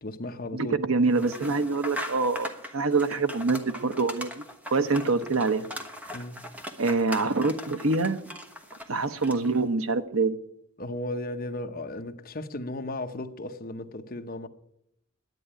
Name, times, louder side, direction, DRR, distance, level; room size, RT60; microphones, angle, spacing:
voice 1, 0.0-0.8 6.1-6.4 10.8-14.5, left 1 dB, 45° left, 1.0 m, -35 dB
voice 2, 0.5-5.6 6.8-8.2 8.9-10.4, right 3 dB, 85° right, 0.9 m, -25 dB
sound 1, 1.1-9.6, equal, 5° right, 1.1 m, -40 dB
11.0 x 9.1 x 9.9 m
head